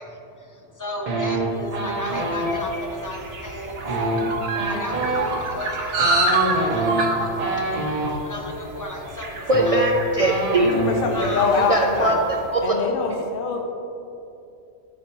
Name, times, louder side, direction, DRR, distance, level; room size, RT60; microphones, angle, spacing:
voice 1, 0.0-4.3 4.7-7.2 8.2-9.9 11.1-11.5, left 1 dB, 20° left, 1 dB, 0.5 m, -34 dB
sound 1, 1.1-2.5 3.8-8.1 9.1-9.2 9.4-11.1 11.3-11.6 11.9-12.4, right 2 dB, 35° right, 0.9 m, -26 dB
sound 2, 1.8-12.3, right 2 dB, 85° right, 1.1 m, -28 dB
voice 2, 9.5-10.7 11.5-12.1 12.7-12.8 13.1-13.2, right 1 dB, 55° right, 0 dB, 0.4 m, -20 dB
voice 3, 10.7-12.2 12.6-13.7, left 4 dB, 55° left, 2 dB, 0.9 m, -24 dB
10.5 x 5.1 x 3.0 m, 2.7 s
omnidirectional pair, 1.2 m